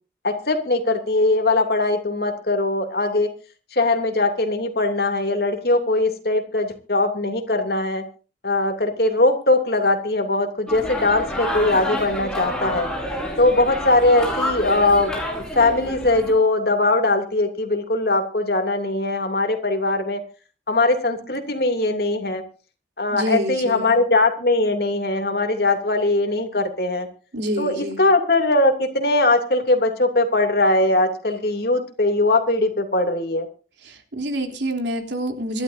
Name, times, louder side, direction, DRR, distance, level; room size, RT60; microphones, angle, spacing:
voice 1, 0.2-3.3 3.7-8.0 8.4-12.9 13.4-15.1 15.6-20.2 20.7-22.4 23.0-27.1 27.6-33.5, left 2 dB, 60° left, 5 dB, 2.9 m, -20 dB
sound 1, 10.7-16.3, equal, 5° left, 4.9 m, -28 dB
voice 2, 23.1-24.0 27.3-28.0 33.8-35.6, equal, 80° right, 4 dB, 3.4 m, -27 dB
25.5 x 12.5 x 2.7 m, 0.36 s
head